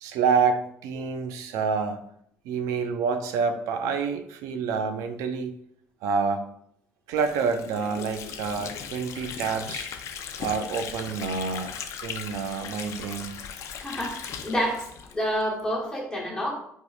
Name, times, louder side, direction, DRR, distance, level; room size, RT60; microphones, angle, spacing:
voice 1, 0.0-2.0 2.4-5.5 6.0-6.5 7.1-9.9 10.4-11.7 12.0-13.3, right 5 dB, 80° right, 7 dB, 0.5 m, -27 dB
Water / Sink (filling or washing), 7.1-15.7, left 7 dB, 60° left, 0.4 m, -38 dB
voice 2, 13.8-14.9 15.1-16.5, equal, 15° left, -3 dB, 1.1 m, -28 dB
4.5 x 2.9 x 2.3 m, 0.70 s
supercardioid pair, 85°, 6 cm